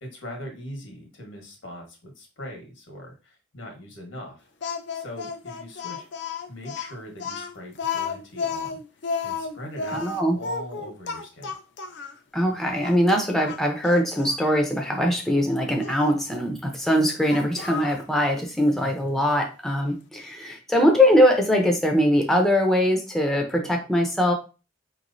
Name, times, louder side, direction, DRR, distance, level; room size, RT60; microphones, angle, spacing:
voice 1, 0.0-4.5 4.9-6.0 6.5-8.8 9.2-11.5 18.8-19.2, left 1 dB, 85° left, 1 dB, 1.3 m, -41 dB
Speech, 4.6-12.2 12.8-12.9 13.4-14.4 15.8-16.1 17.3-18.0, left 5 dB, 60° left, 0.5 m, -32 dB
voice 2, 9.9-10.4 12.3-24.3, equal, ahead, 1 dB, 0.5 m, -22 dB
4.6 x 3.0 x 2.6 m, 0.32 s
head